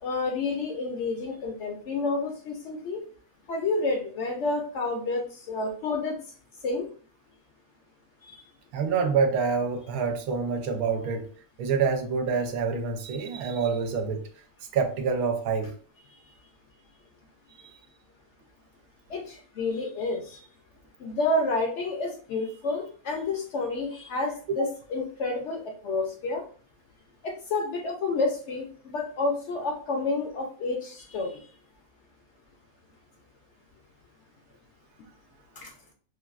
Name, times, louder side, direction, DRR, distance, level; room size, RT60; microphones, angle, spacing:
voice 1, 0.0-3.0 3.5-6.2 6.6-6.9 19.1-20.4 21.0-26.4 27.2-31.4 35.6-35.7, left 3 dB, 65° left, 0.7 m, -29 dB
voice 2, 8.7-11.3 11.6-14.3 14.7-15.7 24.5-24.7, right 5 dB, 85° right, 1.1 m, -27 dB
3.3 x 2.3 x 2.3 m
omnidirectional pair, 1.5 m